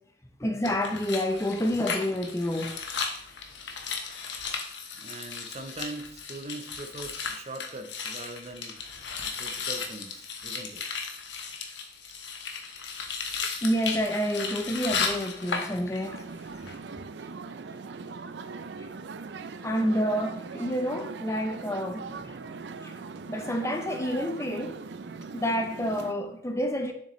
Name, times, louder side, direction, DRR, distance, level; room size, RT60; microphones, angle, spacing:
voice 1, 0.4-2.8 13.6-16.2 18.8-18.9 19.6-22.4 22.8-23.0 23.3-24.8 25.3-26.9, equal, 15° left, 0.6 m, -29 dB
sound 1, 0.6-16.2 16.5-16.7, left 5 dB, 90° left, 1.1 m, -35 dB
voice 2, 5.0-10.8, right 2 dB, 35° right, 0.7 m, -41 dB
sound 2, 16.0-26.1, right 4 dB, 80° right, 0.5 m, -40 dB
7.1 x 6.6 x 3.1 m
head